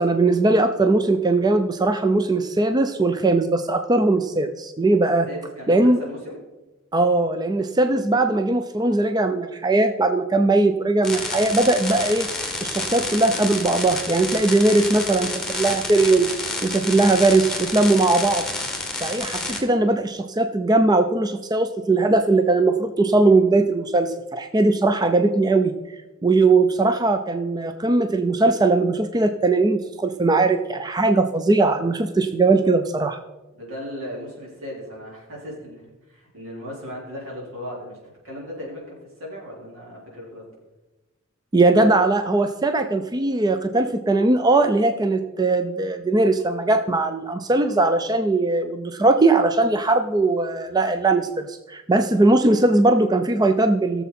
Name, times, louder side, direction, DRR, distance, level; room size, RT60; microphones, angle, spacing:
voice 1, 0.0-5.3 5.7-6.0 6.9-12.3 12.6-16.3 16.6-18.4 19.0-25.7 26.2-33.2 41.5-54.0, right 2 dB, 20° right, 8 dB, 0.4 m, -19 dB
voice 2, 5.3-6.4 33.5-40.5, equal, 75° right, -4 dB, 4.3 m, -37 dB
sound 1, 11.0-19.6, left 2 dB, 5° left, 2.0 m, -29 dB
16.5 x 7.1 x 4.2 m, 1.1 s
head